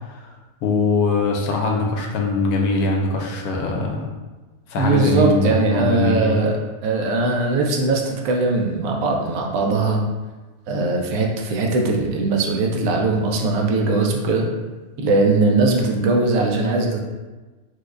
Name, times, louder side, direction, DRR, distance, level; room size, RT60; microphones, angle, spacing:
voice 1, 0.6-4.0 4.7-6.4, left 3 dB, 85° left, 0 dB, 1.1 m, -21 dB
voice 2, 4.8-10.0 10.7-14.5 15.0-17.0, right 3 dB, 80° right, 0 dB, 1.0 m, -20 dB
4.7 x 2.1 x 2.4 m, 1.2 s
omnidirectional pair, 1.6 m